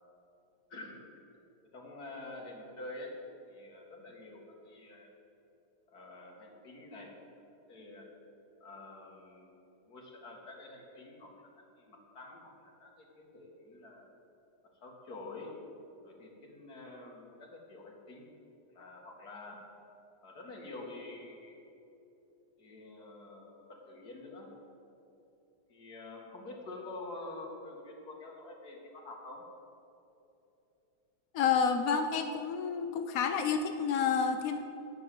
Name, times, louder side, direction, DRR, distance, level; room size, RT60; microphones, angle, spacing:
voice 1, 0.7-1.0 1.6-3.2 3.5-5.1 5.9-7.1 7.7-8.1 8.6-9.6 9.8-14.1 14.8-15.6 16.0-18.2 18.7-19.7 20.2-21.6 22.6-24.5 25.7-29.5, left 2 dB, 45° left, -1 dB, 2.6 m, -47 dB
voice 2, 31.3-34.6, left 6 dB, 75° left, 7 dB, 0.8 m, -29 dB
18.0 x 7.0 x 7.9 m, 2.9 s
omnidirectional pair, 2.4 m